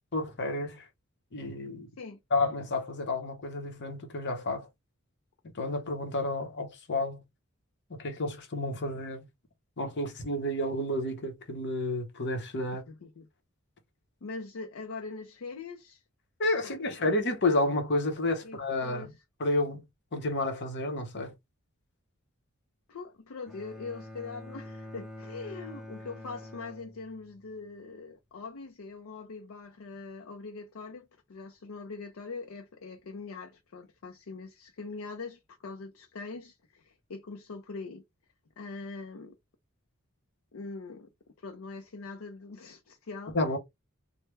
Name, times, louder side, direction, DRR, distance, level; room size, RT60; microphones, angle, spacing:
voice 1, 0.1-0.9 1.3-1.9 2.3-4.7 5.5-7.2 7.9-9.3 9.8-12.8 16.4-19.1 19.4-19.8 20.1-21.3 43.3-43.6, left 2 dB, 55° left, 0.9 m, -30 dB
voice 2, 12.9-13.3 14.2-16.0 16.6-17.1 18.4-19.1 22.9-38.0 38.6-39.4 40.5-41.1 41.4-43.4, left 4 dB, 70° left, 0.5 m, -42 dB
Bowed string instrument, 23.5-27.6, left 1 dB, ahead, 0.5 m, -46 dB
3.3 x 2.1 x 3.2 m
head